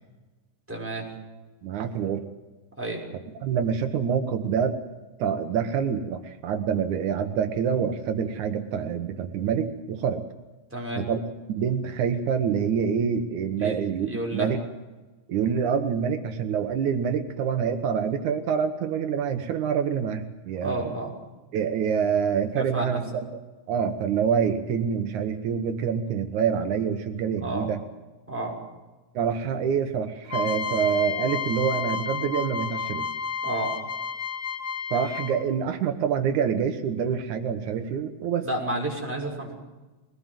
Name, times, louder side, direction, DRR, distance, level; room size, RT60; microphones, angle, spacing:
voice 1, 0.7-1.1 2.8-3.0 10.7-11.1 13.6-14.5 20.6-21.1 22.6-23.0 27.4-27.7 28.3-28.6 33.4-33.8 38.4-39.5, right 1 dB, 5° right, -1 dB, 6.1 m, -31 dB
voice 2, 1.6-2.2 3.4-4.8 5.2-10.2 11.0-11.2 11.6-14.6 15.3-21.0 21.5-23.0 23.7-27.8 29.1-33.1 34.9-38.5, right 7 dB, 80° right, 7 dB, 2.7 m, -26 dB
sound 1, 30.3-35.5, left 6 dB, 90° left, 0.6 m, -31 dB
22.5 x 19.0 x 7.5 m, 1.2 s
omnidirectional pair, 3.4 m